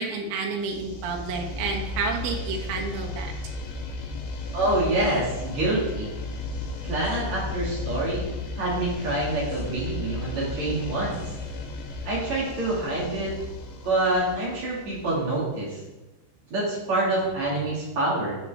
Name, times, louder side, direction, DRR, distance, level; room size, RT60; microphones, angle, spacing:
voice 1, 0.0-3.3, right 4 dB, 80° right, 1 dB, 3.8 m, -30 dB
sound 1, 0.6-15.5, left 2 dB, 75° left, 2.1 m, -34 dB
voice 2, 4.5-6.1 6.8-8.3 8.6-11.2 12.0-13.3 13.8-15.8 16.5-18.3, right 2 dB, 45° right, -5 dB, 2.6 m, -26 dB
13.5 x 6.3 x 3.5 m, 1.1 s
omnidirectional pair, 5.7 m